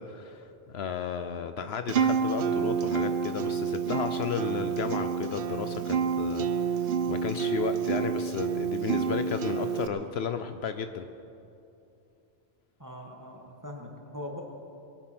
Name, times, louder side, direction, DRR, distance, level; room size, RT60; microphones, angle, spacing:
voice 1, 0.0-11.0, left 6 dB, 65° left, 9 dB, 0.9 m, -34 dB
Acoustic guitar, 1.9-9.9, right 6 dB, 60° right, 0.8 m, -29 dB
voice 2, 12.8-14.4, left 1 dB, 15° right, 0 dB, 1.7 m, -41 dB
21.5 x 9.1 x 6.0 m, 2.7 s
omnidirectional pair, 1.2 m